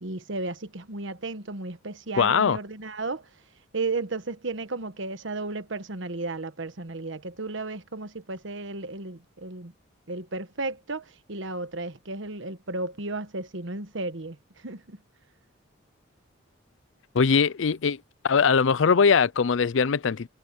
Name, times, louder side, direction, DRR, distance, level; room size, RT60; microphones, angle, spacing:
voice 1, 0.0-3.3 3.7-9.7 10.1-14.4 14.6-15.0, right 3 dB, 70° right, 1.3 m, -34 dB
voice 2, 2.2-2.6 17.1-18.0 18.2-20.3, left 5 dB, 75° left, 0.5 m, -21 dB
head